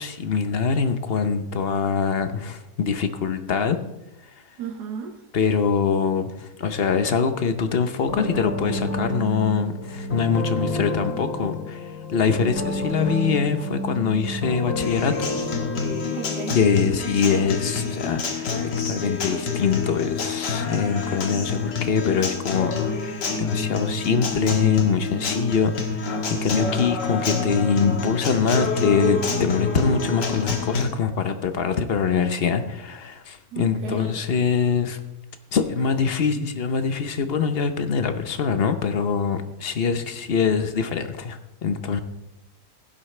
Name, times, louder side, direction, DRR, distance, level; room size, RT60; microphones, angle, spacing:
voice 1, 0.0-3.8 5.3-15.3 16.5-18.6 18.8-35.0 35.5-42.0, left 6 dB, 50° left, 9 dB, 0.8 m, -24 dB
voice 2, 4.6-5.2 16.1-16.6 33.5-34.2, right 7 dB, 70° right, 5 dB, 1.4 m, -34 dB
sound 1, 8.1-16.6, left 1 dB, 65° left, 2.6 m, -30 dB
Acoustic guitar, 14.8-30.8, left 4 dB, 80° left, 2.2 m, -27 dB
16.0 x 11.5 x 3.3 m, 0.91 s
omnidirectional pair, 1.8 m